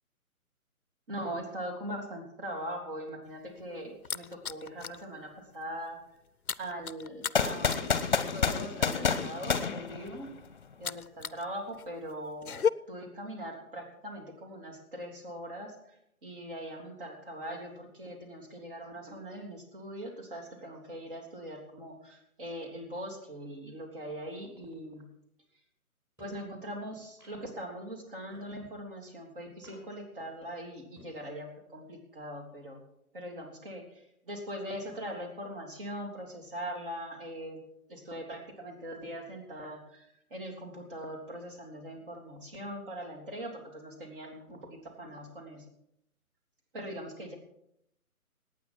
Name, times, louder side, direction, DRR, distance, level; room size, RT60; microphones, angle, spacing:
voice 1, 1.1-6.0 6.6-10.3 10.8-25.1 26.2-32.8 33.1-37.6 37.9-45.6 46.7-47.3, equal, 35° right, 2 dB, 3.3 m, -41 dB
sound 1, 3.2-5.0 5.4-5.6 5.9-11.4 11.7-12.7, left 7 dB, 75° left, 0.7 m, -36 dB
sound 2, 7.3-10.5, left 6 dB, 30° left, 1.1 m, -29 dB
sound 3, 26.2-26.5 27.2-27.6 28.3-28.8 29.6-30.1 30.8-31.1, equal, 5° right, 6.0 m, -55 dB
19.5 x 9.2 x 6.0 m, 0.77 s
figure-of-eight pair, 145°, 44 cm